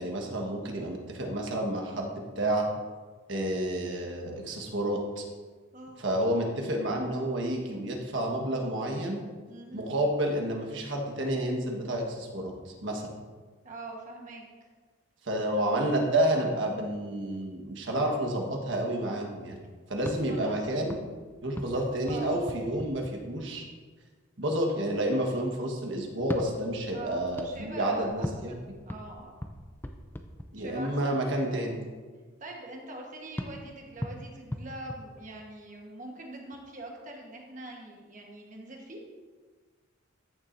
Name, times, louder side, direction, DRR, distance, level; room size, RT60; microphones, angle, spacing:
voice 1, 0.0-2.7 3.3-5.2 6.0-9.2 9.7-13.2 15.2-19.6 19.9-21.0 21.4-23.7 24.4-28.5 30.5-31.8, right 1 dB, 60° right, 1 dB, 1.4 m, -30 dB
voice 2, 9.5-9.8 13.6-14.7 20.3-20.7 22.0-22.3 26.9-29.4 30.6-31.4 32.4-39.0, right 1 dB, 35° right, 0 dB, 1.3 m, -43 dB
sound 1, 19.9-23.8 26.2-31.0 33.4-35.8, left 1 dB, 10° left, 0.4 m, -41 dB
14.5 x 7.2 x 2.7 m, 1.5 s
head